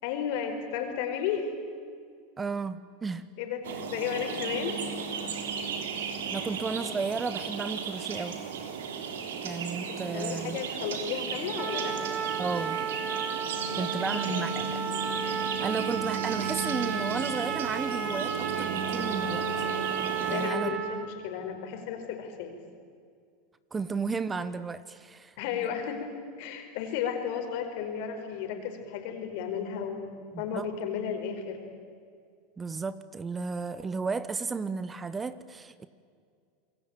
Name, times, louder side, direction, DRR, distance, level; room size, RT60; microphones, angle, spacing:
voice 1, 0.0-1.5 3.4-4.8 9.9-12.0 13.7-13.9 14.3-14.5 20.2-22.6 25.4-31.6, left 8 dB, 65° left, 5 dB, 5.0 m, -34 dB
voice 2, 2.4-3.2 6.3-8.4 9.4-10.6 12.4-12.8 13.8-14.9 15.6-19.7 20.3-20.7 23.7-25.3 30.3-30.7 32.6-35.9, right 4 dB, 20° right, 15 dB, 1.1 m, -33 dB
sound 1, 3.6-20.5, right 5 dB, 85° right, 3.3 m, -34 dB
Trumpet, 11.6-21.1, right 8 dB, 40° right, 2.7 m, -33 dB
28.0 x 21.5 x 9.2 m, 2.2 s
hypercardioid pair, 105°, 0 cm